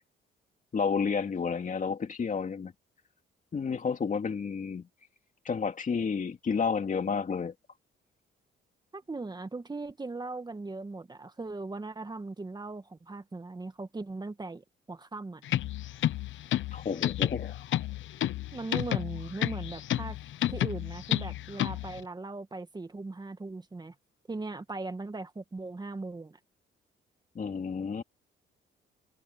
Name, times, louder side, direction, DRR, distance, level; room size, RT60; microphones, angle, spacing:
voice 1, 0.7-2.7 3.5-4.9 5.4-7.5 16.7-17.6 27.3-28.0, left 5 dB, 40° left, 2.7 m, -31 dB
voice 2, 8.9-15.4 18.5-20.2 20.5-23.9 24.3-26.4, right 3 dB, 20° right, 1.7 m, -39 dB
sound 1, 15.4-22.0, left 13 dB, 75° left, 0.9 m, -31 dB
cardioid pair, 90°, 20 cm